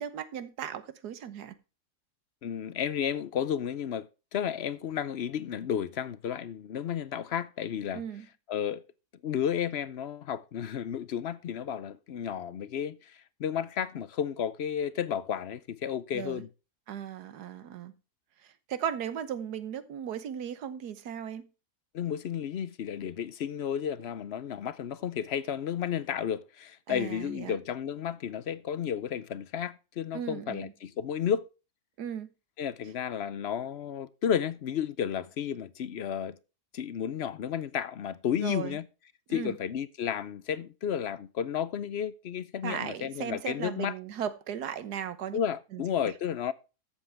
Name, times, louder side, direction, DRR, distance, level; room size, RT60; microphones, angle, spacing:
voice 1, 0.0-1.6 7.9-8.3 16.1-16.4 16.9-17.9 18.4-21.5 26.9-27.6 30.1-30.7 32.0-32.3 38.3-38.8 39.3-39.6 42.6-45.4 45.7-46.1, right 9 dB, 80° right, 1.6 m, -37 dB
voice 2, 2.4-8.0 8.5-8.8 9.2-16.5 21.9-31.5 32.6-36.4 36.7-38.9 39.3-43.9 45.3-46.5, left 8 dB, 60° left, 0.7 m, -32 dB
13.5 x 7.4 x 3.4 m
omnidirectional pair, 1.7 m